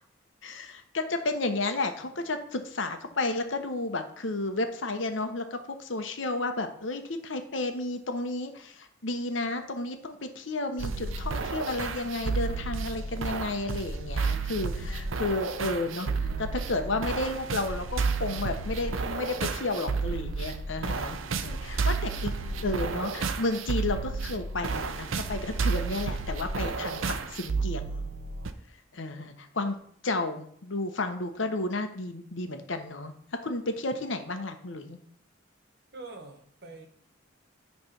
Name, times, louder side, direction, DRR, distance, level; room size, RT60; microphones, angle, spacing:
voice 1, 0.4-22.3 22.6-28.0 28.9-29.8 30.0-33.1 33.4-35.0, left 2 dB, 75° left, 7 dB, 1.0 m, -32 dB
voice 2, 2.0-2.4 33.4-33.5 35.9-36.9, right 3 dB, 55° right, 4 dB, 1.4 m, -46 dB
sound 1, 10.8-28.5, right 4 dB, 90° right, 0.7 m, -31 dB
9.8 x 3.4 x 5.9 m, 0.65 s
head